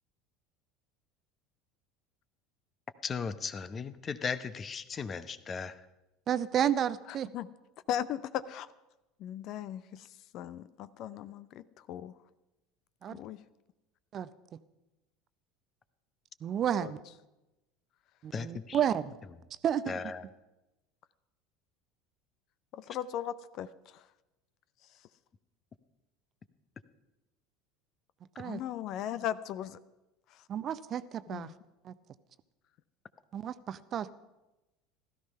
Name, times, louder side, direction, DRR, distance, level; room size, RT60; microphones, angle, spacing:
voice 1, 3.0-5.9 18.3-18.8 19.9-20.2, left 5 dB, 30° left, 14 dB, 0.9 m, -37 dB
voice 2, 6.3-7.3 13.0-13.2 14.1-14.3 16.4-17.0 18.2-19.1 19.6-20.0 28.4-28.6 30.5-31.5 31.8-31.9 33.3-34.1, right 9 dB, 40° right, 15 dB, 0.7 m, -31 dB
voice 3, 7.9-8.7 9.2-10.1 10.3-11.6 11.9-12.1 13.1-13.4 16.7-16.9 22.7-23.7 28.4-29.8 31.3-31.5, left 11 dB, 50° left, 16 dB, 0.6 m, -37 dB
16.0 x 13.5 x 5.5 m, 0.99 s
figure-of-eight pair, 70°, 0 cm